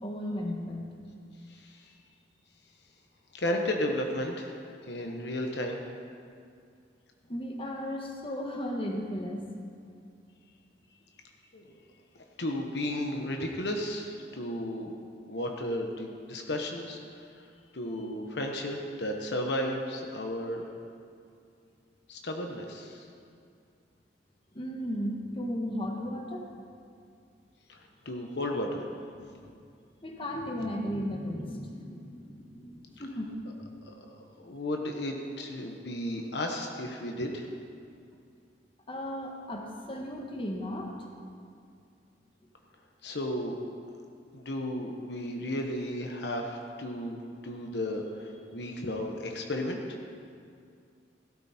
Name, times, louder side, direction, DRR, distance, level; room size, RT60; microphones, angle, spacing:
voice 1, 0.0-0.9 7.3-9.5 24.5-26.5 29.1-29.6 30.0-33.3 38.9-40.9, equal, 30° left, 1 dB, 1.5 m, -35 dB
voice 2, 1.5-1.9 3.3-5.8 11.5-11.6 12.1-15.0 15.3-20.7 22.1-23.0 27.7-28.9 33.9-34.0 34.4-37.5 43.0-43.6 43.8-44.0 44.3-50.0, left 1 dB, 65° left, 2 dB, 1.1 m, -34 dB
16.0 x 13.0 x 4.4 m, 2.3 s
head